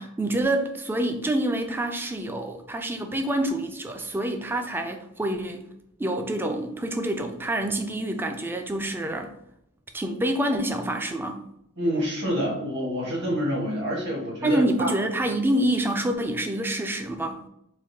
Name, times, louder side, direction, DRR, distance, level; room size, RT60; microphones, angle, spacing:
voice 1, 0.0-5.7 6.0-9.3 9.9-11.4 14.4-17.4, right 1 dB, 10° right, 5 dB, 0.3 m, -27 dB
voice 2, 11.8-14.9, equal, 55° right, -3 dB, 1.4 m, -27 dB
4.0 x 2.6 x 2.7 m, 0.80 s
head